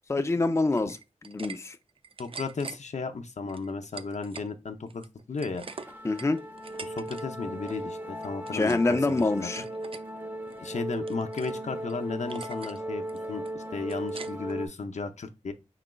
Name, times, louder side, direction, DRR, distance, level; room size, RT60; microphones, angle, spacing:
voice 1, 0.1-1.0 1.2-1.8 6.0-6.4 8.5-9.6, left 2 dB, 25° left, 0.4 m, -25 dB
sound 1, 0.7-1.6 1.9-2.8 3.5-4.5 4.9-7.2 7.5-7.8 8.2-8.9 9.2-10.0 10.5-11.6 11.9-12.0 12.3-12.8 13.1-14.6, right 4 dB, 50° right, 0.4 m, -44 dB
voice 2, 2.2-5.6 6.8-9.6 10.6-15.5, left 4 dB, 70° left, 0.6 m, -35 dB
sound 2, 5.6-14.7, right 1 dB, 15° right, 0.8 m, -37 dB
4.9 x 3.9 x 2.2 m
cardioid pair, 50°, 12 cm